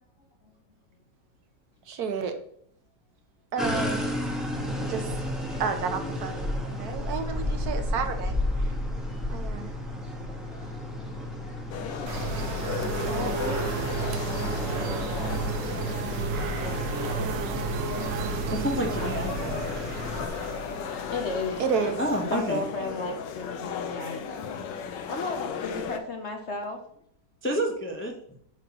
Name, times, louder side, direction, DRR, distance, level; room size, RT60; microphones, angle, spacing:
voice 1, 1.9-2.3 3.5-4.1 4.9-5.2 5.6-8.4 9.3-9.7 21.6-22.0, right 6 dB, 65° right, 7 dB, 1.2 m, -30 dB
sound 1, 3.6-20.3, left 1 dB, ahead, 0.9 m, -33 dB
voice 2, 10.0-11.0 11.3-16.0 16.2-18.5 19.8-21.6 22.3-26.8, left 3 dB, 55° left, 3 dB, 0.8 m, -38 dB
sound 2, 11.7-26.0, left 7 dB, 90° left, 1.4 m, -36 dB
sound 3, 12.1-22.7, right 5 dB, 85° right, 1.4 m, -33 dB
voice 3, 18.5-19.6 21.5-21.7 22.0-22.6 27.4-28.1, equal, 20° left, 1 dB, 0.3 m, -29 dB
9.0 x 5.7 x 2.9 m, 0.67 s
omnidirectional pair, 1.9 m